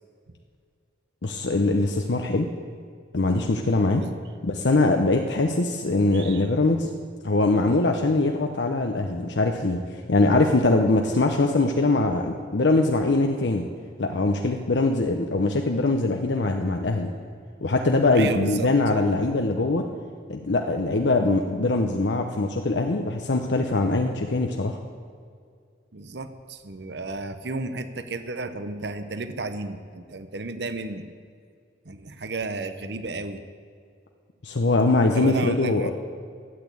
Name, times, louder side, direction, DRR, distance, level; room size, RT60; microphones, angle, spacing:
voice 1, 1.2-2.5 3.1-4.0 4.4-6.9 7.2-13.7 14.0-17.1 17.6-19.9 20.3-24.8 34.4-35.9, left 2 dB, 75° left, 3 dB, 0.8 m, -22 dB
voice 2, 6.1-6.5 18.1-18.7 25.9-31.0 31.8-33.4 35.1-35.9, right 3 dB, 65° right, 10 dB, 0.8 m, -33 dB
12.5 x 8.4 x 8.4 m, 2.2 s
head